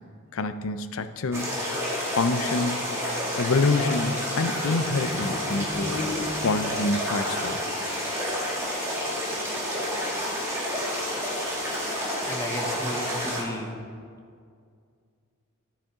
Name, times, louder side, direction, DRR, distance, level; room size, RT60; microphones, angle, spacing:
voice 1, 0.3-1.5 2.1-2.9 3.4-6.0 6.4-7.6, left 3 dB, 70° left, 10 dB, 0.5 m, -26 dB
sound 1, 1.3-13.4, equal, 15° right, 2.1 m, -29 dB
sound 2, 4.8-6.9, left 1 dB, 85° left, 2.5 m, -35 dB
voice 2, 12.3-13.7, left 1 dB, 15° left, 3 dB, 0.8 m, -34 dB
13.5 x 7.4 x 3.7 m, 2.2 s
head